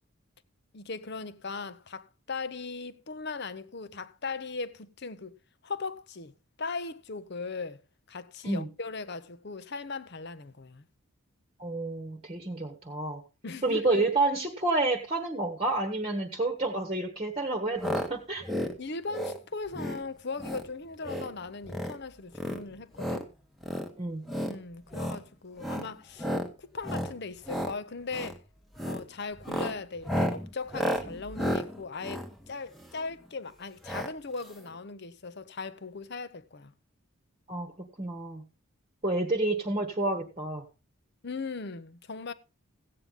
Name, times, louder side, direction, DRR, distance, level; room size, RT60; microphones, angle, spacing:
voice 1, 0.7-5.4 5.6-10.8 13.4-14.0 18.8-23.3 24.4-26.3 26.6-28.4 28.8-36.7 41.2-42.3, left 4 dB, 50° left, 0.8 m, -38 dB
voice 2, 11.6-13.2 13.6-18.4 24.0-24.2 37.5-38.4 39.0-40.7, right 2 dB, 25° right, 1.2 m, -29 dB
sound 1, 17.8-18.1 18.4-18.7 19.1-19.4 19.7-20.0 20.4-20.7 21.0-21.3 21.6-22.0 22.3-23.2 23.6-23.9 24.3-24.5 24.9-25.2 25.6-25.9 26.2-26.5 26.8-27.1 27.4-27.7 28.1-28.4 28.7-29.0 29.4-33.1 33.8-34.1 34.4-34.5 34.7-34.8, equal, ahead, 1.1 m, -32 dB
15.5 x 8.8 x 3.6 m
head